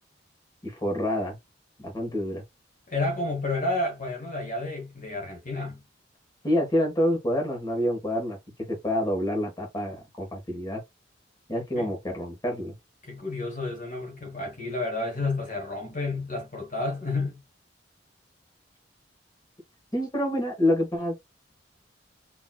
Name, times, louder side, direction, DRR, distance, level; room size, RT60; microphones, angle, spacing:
voice 1, 0.6-1.4 1.8-2.4 6.4-10.8 11.5-12.7 19.9-21.1, left 1 dB, 20° left, 1.7 m, -27 dB
voice 2, 2.9-5.8 11.8-11.9 13.0-17.4, left 2 dB, 45° left, 1.4 m, -30 dB
4.0 x 3.2 x 2.4 m
head